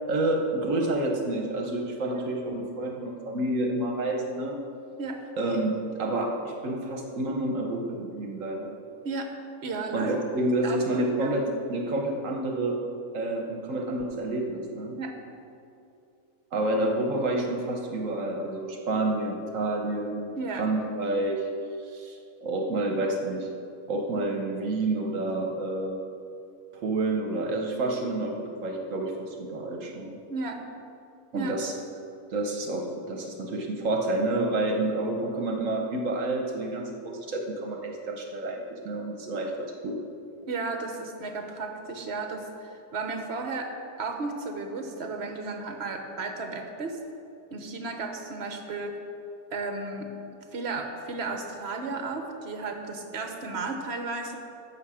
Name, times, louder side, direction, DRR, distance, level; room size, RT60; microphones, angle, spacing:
voice 1, 0.1-4.6 5.4-8.7 9.9-12.8 13.1-15.0 16.5-21.5 21.8-23.5 23.9-26.0 26.7-30.2 31.3-31.7 32.3-40.0, right 2 dB, 70° right, 2 dB, 1.3 m, -29 dB
voice 2, 9.6-10.1 10.6-11.4 15.0-15.1 20.3-20.7 30.3-30.6 31.3-31.5 40.5-43.7 44.0-47.0 47.5-49.0 49.5-50.1 50.5-54.3, right 3 dB, 55° right, 4 dB, 1.2 m, -34 dB
11.5 x 7.3 x 4.9 m, 2.6 s
omnidirectional pair, 1.4 m